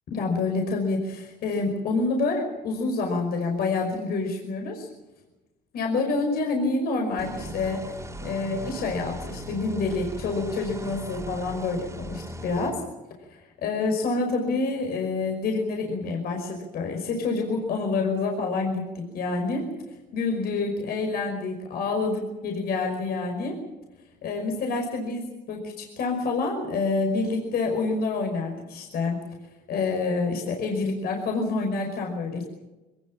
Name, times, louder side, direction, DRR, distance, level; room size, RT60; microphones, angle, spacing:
voice 1, 0.1-4.9 5.7-12.8 13.3-19.7 20.1-23.6 24.2-29.2 29.7-32.4, left 3 dB, 65° left, 2 dB, 5.4 m, -27 dB
sound 1, 7.2-12.7, equal, 15° right, 3.6 m, -38 dB
23.5 x 20.0 x 7.5 m, 1.1 s
cardioid pair, 110°, 17 cm